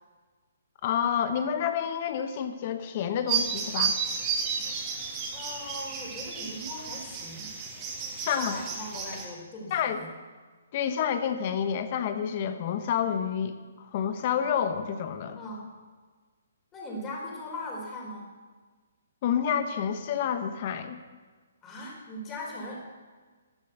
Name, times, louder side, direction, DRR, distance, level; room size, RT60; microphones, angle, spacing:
voice 1, 0.8-4.0 4.6-4.8 8.2-8.6 9.7-10.0 10.7-15.4 19.2-21.0, left 8 dB, 40° left, 9 dB, 1.2 m, -29 dB
sound 1, 3.3-9.3, right 6 dB, 25° right, 2.5 m, -32 dB
voice 2, 5.3-7.6 8.2-10.1 15.3-15.7 16.7-18.3 21.6-22.8, left 1 dB, 20° left, -2 dB, 4.4 m, -39 dB
13.0 x 10.0 x 6.9 m, 1.4 s
hypercardioid pair, 150°, 0 cm